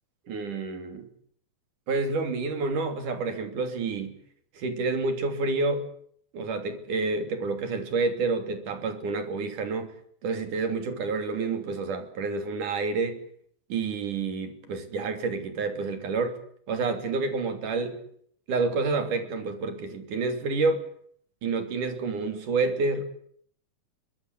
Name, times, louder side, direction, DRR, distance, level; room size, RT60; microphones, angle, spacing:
voice 1, 0.3-1.1 1.9-4.1 4.6-5.8 6.3-9.9 10.2-13.2 13.7-16.4 16.7-18.0 18.5-20.8 21.4-23.0, right 3 dB, 80° right, 8 dB, 4.6 m, -29 dB
24.0 x 21.0 x 8.3 m, 0.63 s
omnidirectional pair, 3.5 m